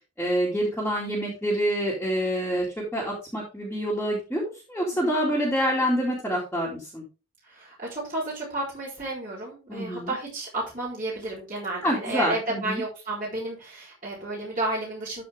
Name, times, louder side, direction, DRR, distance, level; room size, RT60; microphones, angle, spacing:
voice 1, 0.2-2.7 2.9-7.0 9.7-10.1 11.8-12.8, equal, 5° left, -6 dB, 2.5 m, -27 dB
voice 2, 4.7-5.1 7.4-15.2, right 2 dB, 35° right, -5 dB, 3.8 m, -32 dB
12.5 x 5.0 x 3.5 m, 0.30 s
head